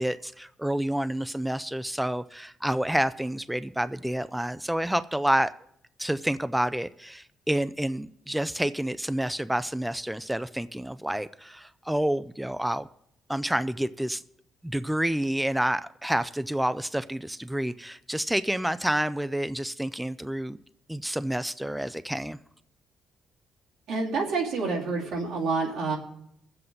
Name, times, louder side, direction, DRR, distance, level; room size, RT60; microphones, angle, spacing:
voice 1, 0.0-5.5 6.0-12.9 13.3-14.2 14.6-20.6 20.9-22.4, right 1 dB, 5° right, 13 dB, 0.4 m, -29 dB
voice 2, 23.9-26.0, right 4 dB, 85° right, -3 dB, 3.0 m, -28 dB
21.0 x 7.7 x 3.9 m, 0.72 s
cardioid pair, 90°, 0 cm